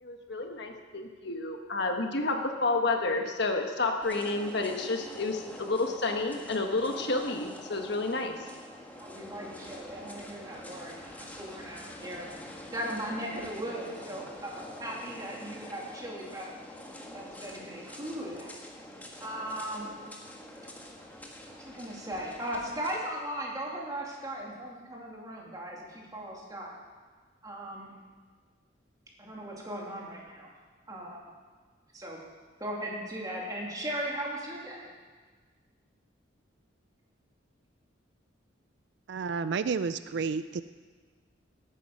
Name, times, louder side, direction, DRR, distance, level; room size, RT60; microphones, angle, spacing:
voice 1, 0.0-8.3, left 3 dB, 60° left, 4 dB, 1.4 m, -30 dB
sound 1, 4.0-23.0, left 1 dB, 10° left, 1.5 m, -46 dB
voice 2, 9.0-12.3 12.7-16.6 17.1-18.5 19.2-19.9 21.5-26.8 27.4-27.9 29.2-30.5 30.9-31.2 31.9-32.2 32.6-34.9, right 1 dB, 20° right, -3 dB, 2.7 m, -38 dB
voice 3, 39.1-40.6, right 5 dB, 60° right, 13 dB, 0.4 m, -31 dB
17.5 x 9.4 x 6.0 m, 1.4 s
head